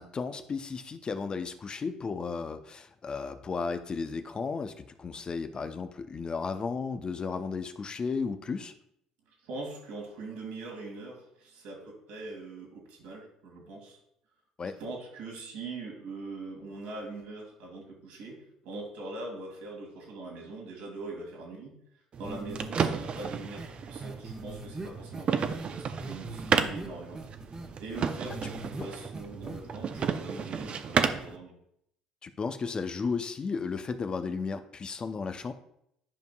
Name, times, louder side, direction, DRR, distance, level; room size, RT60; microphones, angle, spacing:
voice 1, 0.0-8.7 14.6-14.8 28.8-28.9 32.2-35.5, left 5 dB, 35° left, 9 dB, 0.5 m, -34 dB
voice 2, 9.4-14.0 14.8-21.8 22.2-27.2 27.8-31.5, right 3 dB, 70° right, 0 dB, 2.1 m, -42 dB
sound 1, 22.1-31.4, right 6 dB, 45° right, 0.6 m, -32 dB
sound 2, 22.2-22.9 23.2-23.3 23.6-23.7 24.0-25.7 26.0-26.9 27.2-28.9 29.1-29.6 29.9-30.1, right 2 dB, 25° right, 1.1 m, -40 dB
10.5 x 5.2 x 2.3 m, 0.73 s
hypercardioid pair, 60°, 3 cm